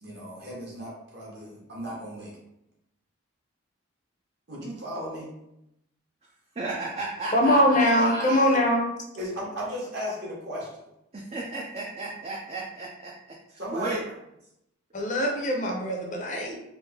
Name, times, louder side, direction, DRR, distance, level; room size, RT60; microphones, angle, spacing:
voice 1, 0.0-2.4 4.5-5.3 7.8-7.9 9.1-10.7 13.6-14.0, equal, 50° right, -4 dB, 1.1 m, -35 dB
voice 2, 6.6-8.4 11.1-14.0, right 2 dB, 30° right, -2 dB, 0.4 m, -34 dB
voice 3, 7.3-8.9 14.9-16.6, left 1 dB, 35° left, 1 dB, 0.5 m, -22 dB
3.3 x 2.5 x 3.4 m, 0.83 s
head